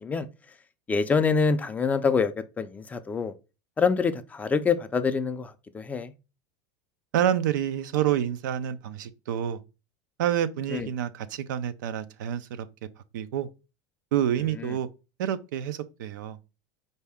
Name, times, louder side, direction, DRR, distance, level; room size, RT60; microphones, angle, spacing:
voice 1, 0.9-3.3 3.8-6.1 10.7-10.9 14.6-14.7, left 5 dB, 15° left, 0.3 m, -26 dB
voice 2, 7.1-9.6 10.2-12.7 13.1-13.5 14.1-14.9 15.2-16.4, right 10 dB, 90° right, 0.5 m, -28 dB
4.7 x 2.7 x 3.4 m
supercardioid pair, 135°, 10 cm